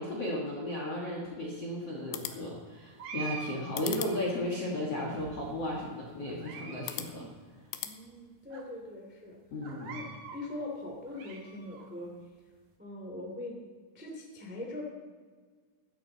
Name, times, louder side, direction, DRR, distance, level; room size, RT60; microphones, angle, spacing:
voice 1, 0.0-7.3 9.5-10.1, left 1 dB, 65° left, -3 dB, 1.5 m, -35 dB
sound 1, 2.0-8.0, left 12 dB, 80° left, 2.8 m, -44 dB
sound 2, 3.0-4.4 5.1-5.8 6.2-7.0 7.2-7.3 8.0-8.1 8.5-8.6 9.6-10.4 10.9-11.8, right 6 dB, 60° right, 2.2 m, -44 dB
voice 2, 7.8-9.3 9.9-10.0 10.3-12.1 12.8-13.6 13.9-14.8, left 2 dB, 15° right, -1 dB, 0.4 m, -41 dB
15.5 x 12.0 x 4.0 m, 1.5 s
omnidirectional pair, 5.7 m